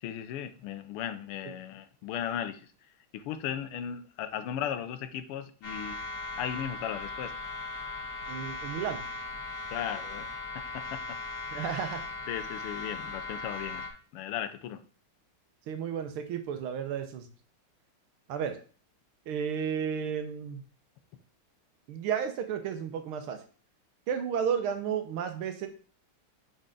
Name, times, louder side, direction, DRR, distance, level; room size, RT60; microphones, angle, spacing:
voice 1, 0.0-2.7 3.1-6.0 6.4-7.3 9.7-10.3 10.5-11.2 11.5-11.9 12.3-13.8 14.1-14.8, left 9 dB, 85° left, 11 dB, 1.6 m, -36 dB
sound 1, 5.6-13.9, left 3 dB, 40° left, 1.6 m, -38 dB
voice 2, 8.3-9.0 11.5-12.0 15.7-17.3 18.3-18.6 19.3-20.6 21.9-23.4 24.1-25.7, right 7 dB, 75° right, 7 dB, 1.7 m, -32 dB
6.6 x 4.6 x 3.8 m, 0.40 s
omnidirectional pair, 2.4 m